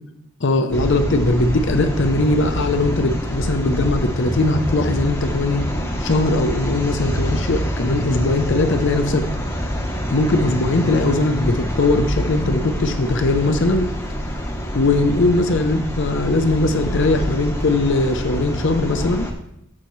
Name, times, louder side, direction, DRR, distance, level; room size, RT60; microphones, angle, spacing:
voice 1, 0.4-5.7 6.0-9.3 10.1-13.9 14.7-19.3, left 2 dB, 55° left, 7 dB, 0.6 m, -20 dB
sound 1, 0.7-19.3, equal, 10° left, 0.9 m, -26 dB
13.5 x 5.7 x 3.1 m, 0.78 s
head